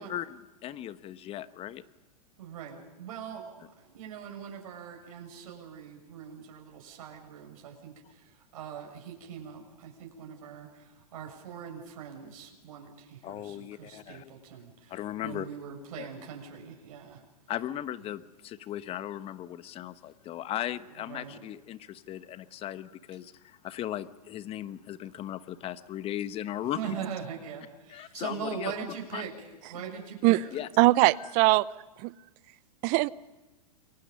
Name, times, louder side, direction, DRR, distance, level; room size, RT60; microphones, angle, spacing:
voice 1, 0.0-1.8 13.2-14.2 14.9-15.5 16.0-16.1 17.5-27.1 27.9-28.7 29.1-29.3 29.7-29.8 30.5-30.7 31.2-31.3, left 12 dB, 30° left, 13 dB, 1.1 m, -37 dB
voice 2, 2.4-15.0 15.2-17.2 21.0-21.4 26.7-29.3 29.7-30.4, right 8 dB, 60° right, 2 dB, 6.8 m, -41 dB
voice 3, 30.8-31.7 32.0-32.1 32.8-33.1, right 22 dB, 40° right, 20 dB, 0.8 m, -21 dB
30.0 x 23.5 x 5.5 m, 1.1 s
hypercardioid pair, 115°, 20 cm